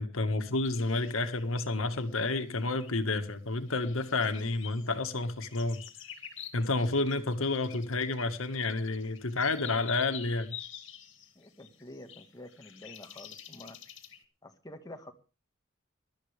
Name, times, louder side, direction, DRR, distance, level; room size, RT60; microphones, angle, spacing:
voice 1, 0.0-5.8 6.5-10.5, left 3 dB, 90° left, 1.6 m, -30 dB
sound 1, 0.6-3.0 3.7-14.2, left 9 dB, 65° left, 2.3 m, -48 dB
voice 2, 11.3-13.8 14.4-15.1, left 1 dB, 20° left, 1.6 m, -48 dB
20.5 x 12.5 x 3.4 m
head